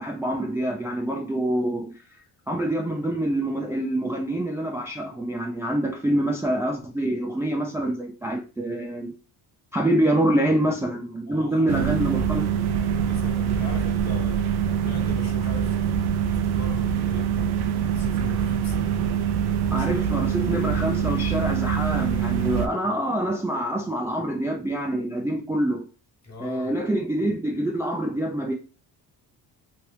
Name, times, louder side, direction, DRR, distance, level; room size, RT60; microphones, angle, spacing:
voice 1, 0.0-2.0 2.5-9.1 9.7-12.5 19.7-25.8 26.4-28.5, right 1 dB, 5° right, 0.4 m, -26 dB
voice 2, 11.3-18.9 19.7-20.6 26.2-26.8, left 3 dB, 40° left, 1.3 m, -41 dB
sound 1, 11.7-22.7, right 8 dB, 70° right, 0.6 m, -24 dB
3.0 x 2.6 x 3.2 m
cardioid pair, 80°, 41 cm